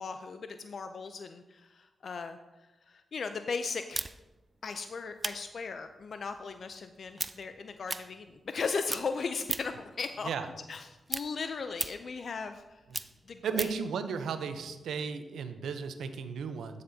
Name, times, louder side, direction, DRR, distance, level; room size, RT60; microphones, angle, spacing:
voice 1, 0.0-2.4 2.9-4.1 4.6-10.3 10.7-12.8 13.3-13.7, left 5 dB, 60° left, 8 dB, 0.4 m, -37 dB
sound 1, 3.9-8.6 8.9-9.9 10.3-13.9, right 2 dB, 30° right, 0.4 m, -38 dB
voice 2, 13.4-16.8, right 6 dB, 85° right, 9 dB, 0.6 m, -35 dB
12.5 x 6.7 x 2.7 m, 1.1 s
cardioid pair, 60°, 0 cm